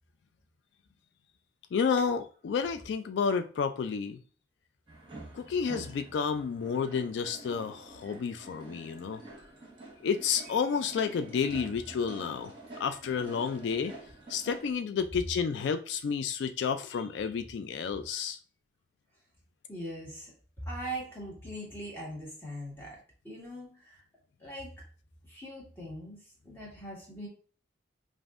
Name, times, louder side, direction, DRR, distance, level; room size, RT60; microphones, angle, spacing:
voice 1, 1.7-4.2 5.3-9.2 10.0-12.5 12.8-13.9 14.3-18.4, left 6 dB, 80° left, 0.3 m, -31 dB
sound 1, 4.9-14.7, right 2 dB, 25° right, 1.1 m, -48 dB
voice 2, 19.7-23.0 23.2-24.0 24.4-24.8 25.3-26.2 26.4-27.3, right 1 dB, 10° left, 1.5 m, -41 dB
5.2 x 2.6 x 2.5 m
head